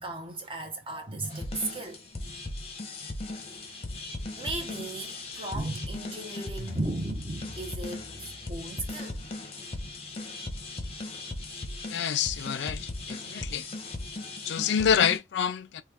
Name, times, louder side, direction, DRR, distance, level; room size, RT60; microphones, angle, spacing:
voice 1, 0.0-2.0 4.4-9.2 13.5-14.0, right 2 dB, 30° right, 0.8 m, -36 dB
sound 1, 1.3-15.2, left 2 dB, 30° left, 0.7 m, -38 dB
voice 2, 11.9-12.8 13.1-13.6 14.5-15.8, left 8 dB, 70° left, 0.4 m, -27 dB
3.0 x 2.2 x 3.4 m
head